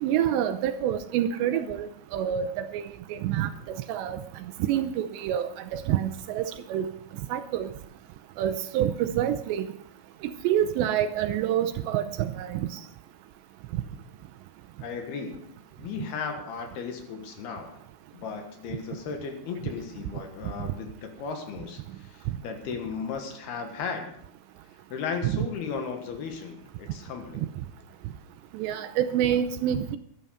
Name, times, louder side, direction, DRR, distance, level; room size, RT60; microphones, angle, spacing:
voice 1, 0.0-2.5 2.7-2.8 3.1-4.2 4.7-6.9 7.3-7.7 8.4-9.7 10.4-12.7 25.2-25.4 28.5-30.0, right 10 dB, 80° right, 10 dB, 2.7 m, -27 dB
voice 2, 14.8-17.8 18.1-24.1 24.9-27.5, left 5 dB, 65° left, 5 dB, 3.1 m, -36 dB
12.5 x 12.0 x 5.6 m, 0.68 s
omnidirectional pair, 5.3 m